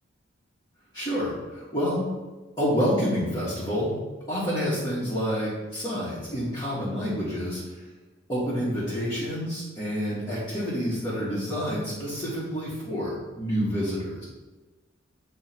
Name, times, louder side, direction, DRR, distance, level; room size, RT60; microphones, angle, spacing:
voice 1, 0.9-2.1 2.6-3.9 4.3-7.8 8.3-14.2, equal, 20° left, -11 dB, 1.8 m, -28 dB
8.8 x 3.2 x 6.0 m, 1.2 s
head